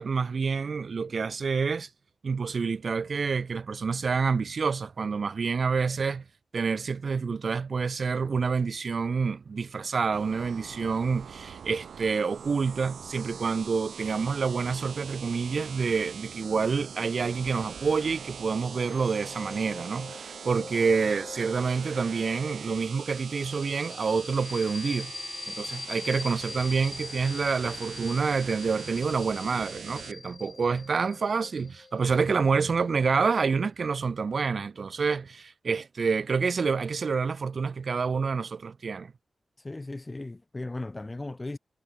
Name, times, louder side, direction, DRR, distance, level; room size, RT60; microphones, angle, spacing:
voice 1, 0.0-1.9 2.2-6.2 6.5-25.1 25.5-39.1, right 5 dB, 60° right, 2.5 m, -28 dB
sound 1, 10.1-30.1, right 7 dB, 90° right, 5.4 m, -43 dB
sound 2, 17.4-33.7, left 4 dB, 45° left, 2.9 m, -44 dB
voice 2, 39.6-41.6, left 2 dB, 25° left, 3.5 m, -37 dB
cardioid pair, 70°, 0 cm